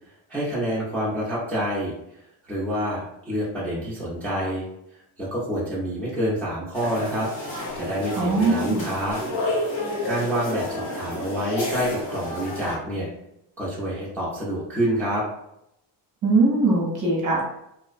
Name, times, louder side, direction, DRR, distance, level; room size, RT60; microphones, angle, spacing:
voice 1, 0.3-1.9 2.5-4.7 5.2-7.3 7.8-9.2 10.0-13.1 13.6-15.2, equal, 5° left, -8 dB, 0.4 m, -27 dB
sound 1, 6.7-12.8, left 1 dB, 55° left, 1.1 m, -30 dB
voice 2, 8.1-8.9 16.2-17.4, right 3 dB, 40° right, -2 dB, 0.6 m, -21 dB
2.5 x 2.0 x 2.4 m, 0.79 s
cardioid pair, 165°, 47 cm